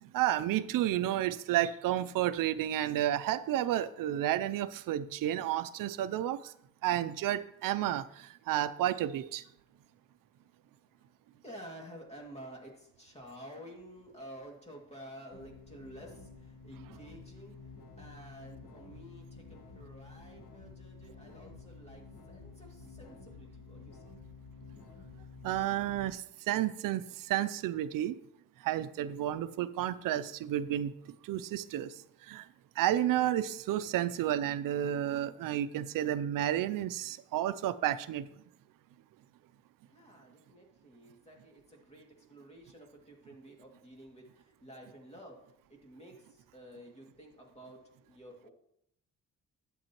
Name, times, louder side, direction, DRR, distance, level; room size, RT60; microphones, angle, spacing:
voice 1, 0.0-6.5 6.8-9.4 25.4-28.2 28.6-30.9 31.2-32.5 32.8-38.3, right 12 dB, 85° right, 14 dB, 0.5 m, -31 dB
voice 2, 11.4-17.6 18.0-24.0 39.9-45.4 45.7-47.8 48.1-48.5, equal, 20° left, 0 dB, 2.3 m, -51 dB
sound 1, 15.3-26.1, left 4 dB, 75° left, 1.4 m, -51 dB
11.5 x 7.9 x 3.0 m, 0.73 s
cardioid pair, 120°, 32 cm